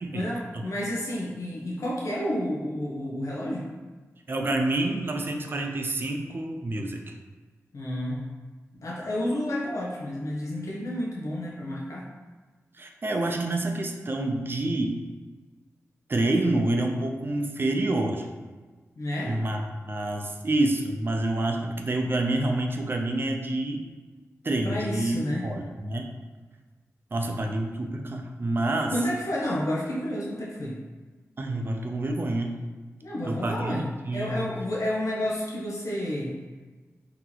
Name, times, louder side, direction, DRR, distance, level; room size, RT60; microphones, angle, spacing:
voice 1, 0.1-3.7 7.7-8.3 8.8-12.1 19.0-19.4 24.6-25.5 28.9-30.8 33.0-36.3, left 1 dB, 70° left, -4 dB, 0.7 m, -30 dB
voice 2, 4.3-7.1 12.8-15.0 16.1-18.3 19.3-23.9 24.4-26.1 27.1-29.0 31.4-32.6 33.2-33.8 34.0-34.5, right 2 dB, 40° right, 3 dB, 0.4 m, -28 dB
2.9 x 2.9 x 3.8 m, 1.4 s
wide cardioid pair, 80°, 6 cm